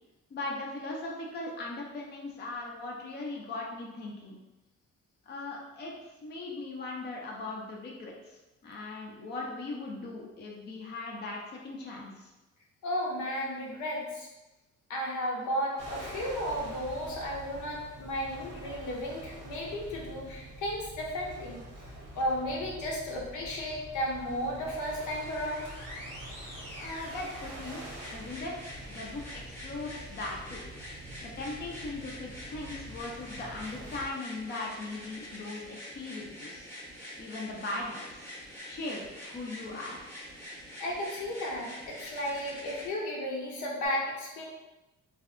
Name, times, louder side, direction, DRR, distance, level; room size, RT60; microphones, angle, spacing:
voice 1, 0.3-4.3 5.3-12.3 26.8-27.8 28.1-30.6 31.2-36.7 37.2-38.3 38.6-40.0, left 2 dB, 35° left, -1 dB, 0.5 m, -39 dB
voice 2, 12.8-14.3 14.9-21.6 22.1-25.7 40.8-44.4, equal, 75° left, -3 dB, 0.7 m, -34 dB
sound 1, 15.8-34.1, right 1 dB, 85° right, 0.8 m, -46 dB
sound 2, 24.7-42.9 43.9-44.0, left 1 dB, 10° left, 0.8 m, -46 dB
2.6 x 2.2 x 2.4 m, 1.0 s
cardioid pair, 90°, 30 cm